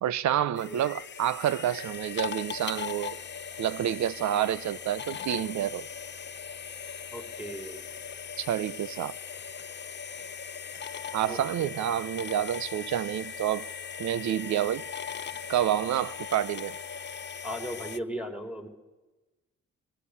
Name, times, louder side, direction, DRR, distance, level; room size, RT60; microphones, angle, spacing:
voice 1, 0.0-3.2 3.6-5.9 8.4-9.1 11.1-13.7 14.0-14.9 15.5-16.8, right 11 dB, 65° right, 0.9 m, -28 dB
sound 1, 0.6-18.0, left 7 dB, 35° left, 1.0 m, -39 dB
voice 2, 7.1-7.8 11.3-11.7 17.4-18.7, equal, 5° right, 4.3 m, -37 dB
24.5 x 21.5 x 8.5 m
cardioid pair, 90°, 30 cm